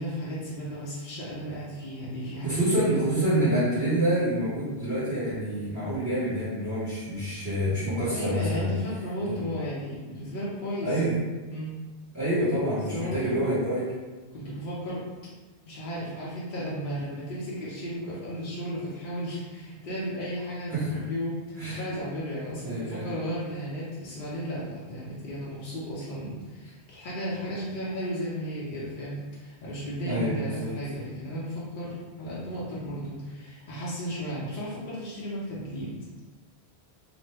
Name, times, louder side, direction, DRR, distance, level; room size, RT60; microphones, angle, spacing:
voice 1, 0.0-3.1 8.1-11.0 11.5-11.7 12.9-13.4 14.3-15.0 15.6-36.0, equal, 55° left, -8 dB, 0.7 m, -34 dB
voice 2, 2.4-8.7 9.3-9.4 10.8-11.2 12.1-13.8 20.7-21.0 21.6-21.9 22.6-23.1 30.0-30.7, right 1 dB, 20° right, -11 dB, 0.8 m, -27 dB
3.0 x 2.0 x 3.2 m, 1.3 s
omnidirectional pair, 1.1 m